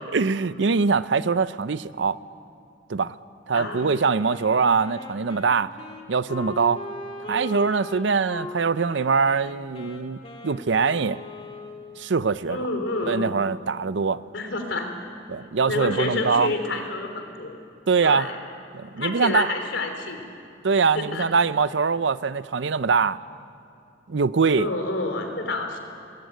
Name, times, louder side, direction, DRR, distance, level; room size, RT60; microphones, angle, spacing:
voice 1, 0.1-2.2 2.9-3.1 3.5-5.7 6.1-6.9 7.3-10.2 10.4-11.2 12.0-12.6 13.1-14.2 15.3-16.5 17.9-18.3 18.7-19.5 20.6-23.2 24.1-24.7, right 5 dB, 75° right, 16 dB, 0.6 m, -23 dB
voice 2, 3.5-4.0 12.5-13.3 14.3-14.9 15.6-17.6 18.0-18.4 19.0-20.3 20.9-21.3 24.6-25.8, left 3 dB, 90° left, 5 dB, 3.4 m, -28 dB
Wind instrument woodwind instrument, 3.6-12.1, left 2 dB, 30° left, 2.0 m, -39 dB
21.0 x 20.0 x 9.2 m, 2.6 s
head